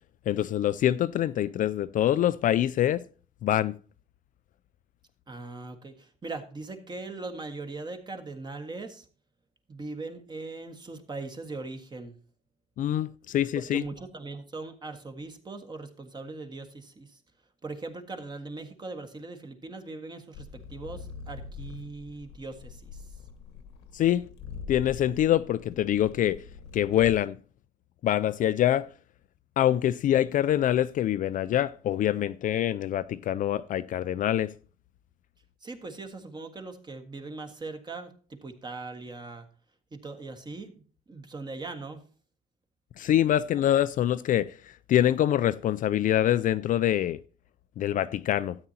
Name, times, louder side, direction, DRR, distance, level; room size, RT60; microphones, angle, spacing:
voice 1, 0.3-3.0 3.4-3.7 12.8-13.8 23.9-24.3 24.7-26.4 26.7-27.4 28.0-28.9 29.6-34.5 43.0-44.5 44.9-47.2 47.8-48.6, left 11 dB, 50° left, 0.4 m, -25 dB
voice 2, 5.3-9.1 9.7-12.2 13.5-17.2 17.6-23.2 35.6-39.5 39.9-42.0, right 3 dB, 25° right, 1.6 m, -40 dB
sound 1, 20.3-27.1, left 5 dB, 90° left, 1.4 m, -43 dB
13.0 x 8.9 x 2.8 m
cardioid pair, 110°, 17 cm